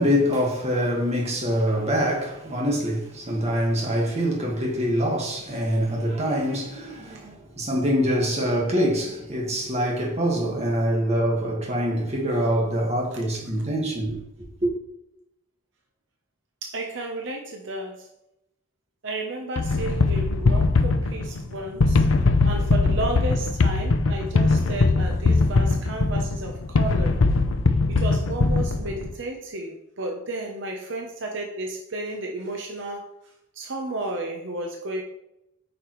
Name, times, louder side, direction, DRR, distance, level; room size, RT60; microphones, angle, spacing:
voice 1, 0.0-14.2 14.6-14.7, equal, 35° right, 1.7 m, -24 dB
voice 2, 16.6-18.1 19.0-22.1 22.4-27.2 27.9-33.1 33.5-35.0, right 2 dB, 65° right, 0.8 m, -32 dB
sound 1, 19.6-29.1, left 3 dB, 80° left, 0.6 m, -21 dB
8.7 x 5.2 x 3.1 m
head